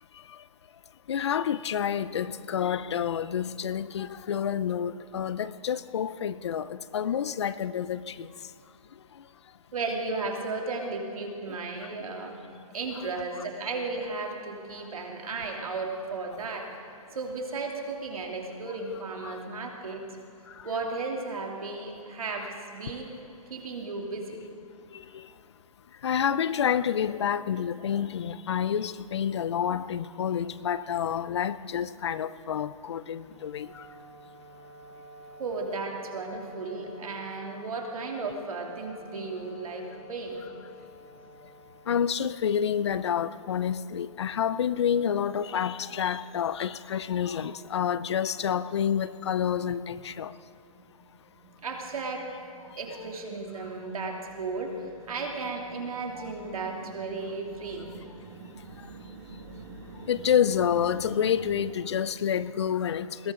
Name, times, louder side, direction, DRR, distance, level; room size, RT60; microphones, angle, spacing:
voice 1, 1.1-8.3 9.2-9.3 11.5-11.6 18.9-19.0 19.2-19.4 20.5-20.7 24.9-25.3 26.0-33.9 41.9-50.3 56.2-56.3 60.1-63.3, left 8 dB, 50° left, 0.6 m, -28 dB
voice 2, 9.7-12.4 12.7-16.7 17.1-20.0 20.6-23.1 23.5-24.4 35.4-40.4 51.6-52.3 52.8-57.9, right 3 dB, 75° right, 3.0 m, -34 dB
Wind instrument woodwind instrument, 33.2-42.5, left 1 dB, 5° right, 1.2 m, -49 dB
sound 1, 49.6-61.6, right 3 dB, 35° right, 2.0 m, -48 dB
21.5 x 16.5 x 3.8 m
hypercardioid pair, 170°, 18 cm